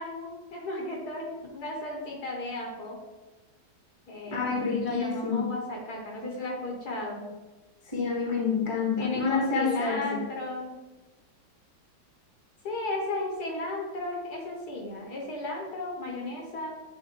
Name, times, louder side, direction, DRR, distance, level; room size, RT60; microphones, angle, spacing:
voice 1, 0.0-3.0 4.1-4.4 4.7-7.3 9.0-10.8 12.6-16.7, left 2 dB, 60° left, -1 dB, 1.5 m, -34 dB
voice 2, 4.3-5.5 7.9-10.2, left 5 dB, 20° left, -2 dB, 1.2 m, -28 dB
9.9 x 3.4 x 3.0 m, 1.1 s
omnidirectional pair, 2.0 m